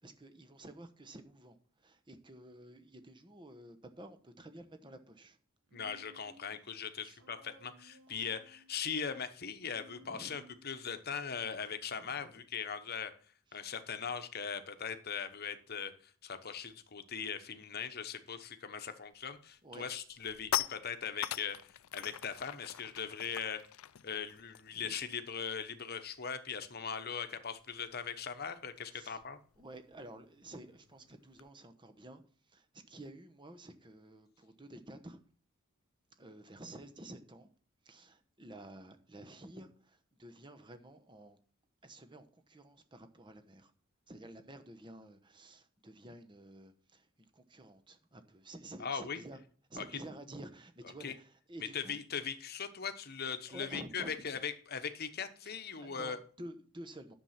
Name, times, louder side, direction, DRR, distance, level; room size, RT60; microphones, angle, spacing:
voice 1, 0.0-5.4 7.0-7.2 10.0-10.3 12.0-12.4 13.5-13.6 19.6-19.9 24.7-24.9 28.9-29.2 29.6-32.2 32.5-35.2 36.1-37.5 37.8-41.4 41.8-43.7 44.1-49.4 49.7-52.0 53.5-54.1 55.4-55.5 55.8-57.1, right 1 dB, 20° right, 8 dB, 1.0 m, -51 dB
voice 2, 5.7-13.1 13.5-21.6 21.9-23.7 24.0-29.4 48.8-49.2 49.8-49.9 51.0-51.2 51.7-56.2, left 6 dB, 45° left, 9 dB, 1.0 m, -40 dB
Human voice, 5.7-6.6 7.2-8.8 9.6-10.9, right 1 dB, 75° right, 1.3 m, -60 dB
sound 1, 19.1-19.4 19.8-25.7 26.0-26.2 26.5-31.5, left 11 dB, 75° left, 0.5 m, -43 dB
10.5 x 7.2 x 5.8 m, 0.43 s
head